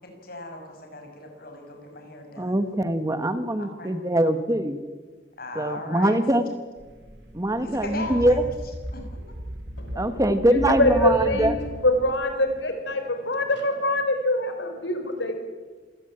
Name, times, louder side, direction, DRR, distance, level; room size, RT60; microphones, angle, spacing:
voice 1, 0.0-2.5 3.6-3.9 5.4-6.4 7.5-8.4 8.9-9.2, left 2 dB, 55° left, 3 dB, 6.2 m, -38 dB
voice 2, 2.4-4.8 5.5-6.4 7.3-8.4 9.9-11.5, right 1 dB, 20° right, 10 dB, 1.3 m, -23 dB
sound 1, 6.8-12.2, equal, 70° right, 4.3 m, -36 dB
voice 3, 9.8-10.2 10.5-11.5 11.8-15.3, left 1 dB, 80° left, 6 dB, 4.8 m, -24 dB
27.0 x 17.5 x 8.9 m, 1.4 s
head